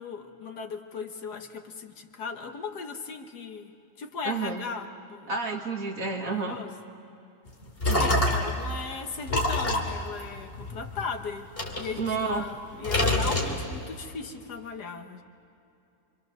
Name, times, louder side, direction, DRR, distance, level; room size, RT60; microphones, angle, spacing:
voice 1, 0.0-3.7 4.0-5.3 6.2-6.7 8.0-11.5 11.8-15.2, left 5 dB, 70° left, 5 dB, 1.9 m, -37 dB
voice 2, 4.2-4.6 5.3-6.6 7.9-8.2 11.9-12.5, right 4 dB, 55° right, 1 dB, 2.4 m, -30 dB
sound 1, 7.5-8.6 9.3-11.0 11.6-12.5 12.8-14.0, left 1 dB, 35° left, 3.0 m, -26 dB
27.0 x 26.0 x 6.8 m, 2.6 s
omnidirectional pair, 1.8 m